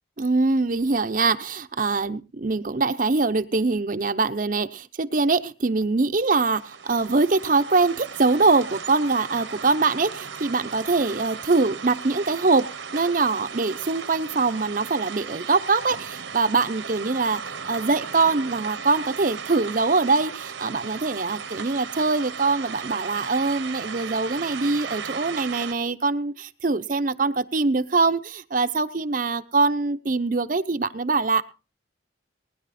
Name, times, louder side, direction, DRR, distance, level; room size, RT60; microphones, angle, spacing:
voice 1, 0.2-12.7 12.9-17.4 17.7-31.4, right 3 dB, 45° right, 9 dB, 0.7 m, -23 dB
sound 1, 6.3-25.7, right 6 dB, 80° right, 1.1 m, -36 dB
20.0 x 10.0 x 4.2 m, 0.35 s
head